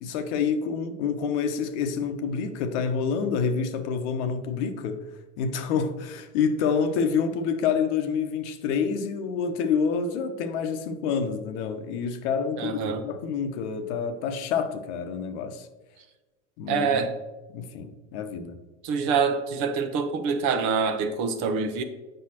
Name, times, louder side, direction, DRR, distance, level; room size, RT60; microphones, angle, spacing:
voice 1, 0.0-5.1 5.4-15.7 16.6-17.1 17.5-18.6, left 6 dB, 60° left, 1.0 m, -28 dB
voice 2, 12.6-13.0 16.7-17.1 18.8-21.8, right 5 dB, 50° right, 0.9 m, -25 dB
7.7 x 5.5 x 2.9 m
hypercardioid pair, 100°, 39 cm